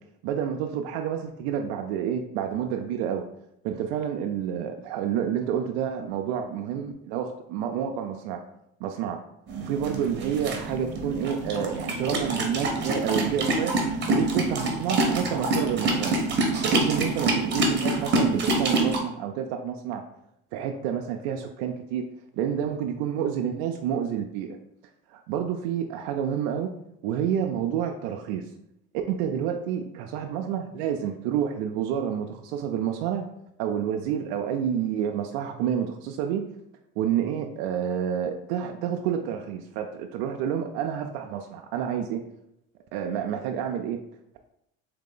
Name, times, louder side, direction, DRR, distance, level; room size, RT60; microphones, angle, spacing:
voice 1, 0.2-3.2 3.6-8.4 8.8-9.2 9.6-13.7 14.1-16.2 16.6-20.0 20.5-22.0 22.3-24.6 25.1-26.7 27.0-28.5 28.9-33.3 33.6-36.5 37.0-42.2 42.9-44.0, right 8 dB, 85° right, 4 dB, 0.5 m, -29 dB
sound 1, 9.5-19.0, right 2 dB, 35° right, 1.0 m, -26 dB
4.0 x 2.9 x 3.7 m, 0.77 s
supercardioid pair, 105°, 32 cm